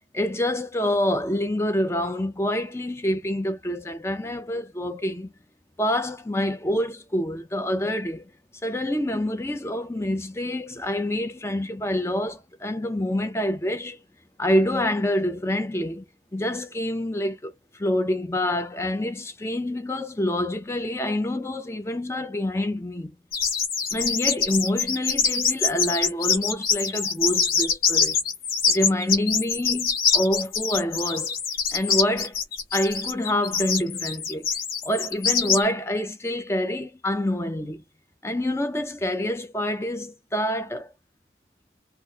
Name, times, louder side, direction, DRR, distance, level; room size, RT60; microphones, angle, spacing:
voice 1, 0.1-5.3 5.8-8.2 8.6-14.0 14.4-16.0 16.3-23.2 23.9-28.2 28.7-31.3 31.7-32.4 32.7-34.5 34.8-37.8 38.2-40.9, left 1 dB, 15° left, 0.5 m, -27 dB
sound 1, 23.3-35.6, left 6 dB, 50° left, 1.0 m, -24 dB
3.3 x 2.1 x 2.7 m
head